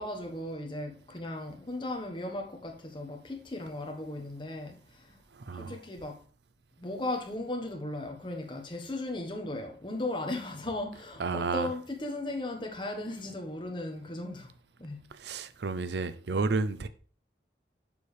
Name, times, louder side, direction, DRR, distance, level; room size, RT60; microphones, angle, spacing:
voice 1, 0.0-5.2 5.5-6.2 6.8-14.5 14.8-15.0, left 2 dB, 25° left, 1.2 m, -37 dB
voice 2, 5.3-5.8 11.2-11.7 15.1-16.9, right 4 dB, 70° right, 0.5 m, -31 dB
6.9 x 6.6 x 3.3 m
head